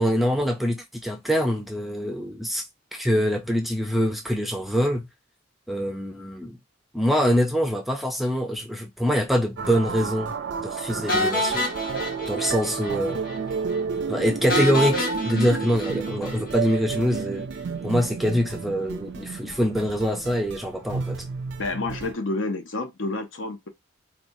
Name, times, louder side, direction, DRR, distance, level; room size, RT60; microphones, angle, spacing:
voice 1, 0.0-2.7 2.9-5.1 5.7-6.6 6.9-11.6 12.3-13.2 14.1-17.5 17.8-21.2, equal, ahead, 0.4 m, -24 dB
sound 1, 9.6-22.1, right 5 dB, 65° right, 0.4 m, -31 dB
sound 2, 11.1-13.0 13.2-13.4 13.7-13.8 14.5-16.8, left 1 dB, 45° left, 1.1 m, -28 dB
voice 2, 21.6-23.7, left 2 dB, 80° left, 0.8 m, -29 dB
4.3 x 2.3 x 2.7 m
head